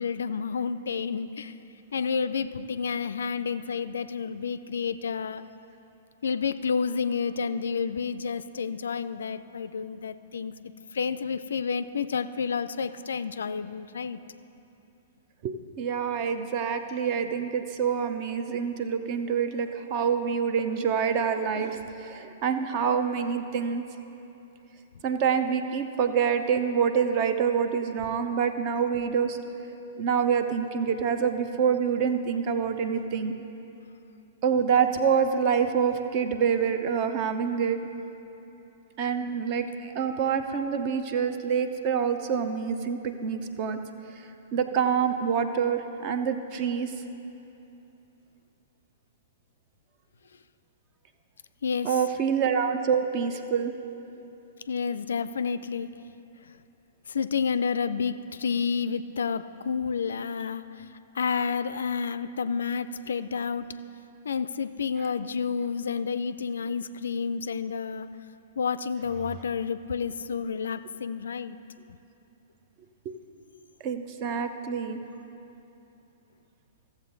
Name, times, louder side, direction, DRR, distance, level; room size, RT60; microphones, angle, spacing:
voice 1, 0.0-1.5 1.9-5.4 6.2-14.2 51.6-52.0 54.7-56.1 57.1-60.9 61.1-63.7 64.2-68.1 68.6-71.6, left 6 dB, 65° left, 13 dB, 0.3 m, -30 dB
voice 2, 15.4-23.8 25.0-29.4 30.0-33.3 34.4-37.8 39.0-43.8 44.5-46.9 51.8-53.7 73.0-73.2 73.8-75.0, right 7 dB, 40° right, 8 dB, 0.6 m, -26 dB
14.5 x 7.3 x 3.9 m, 2.9 s
figure-of-eight pair, 110°, 0 cm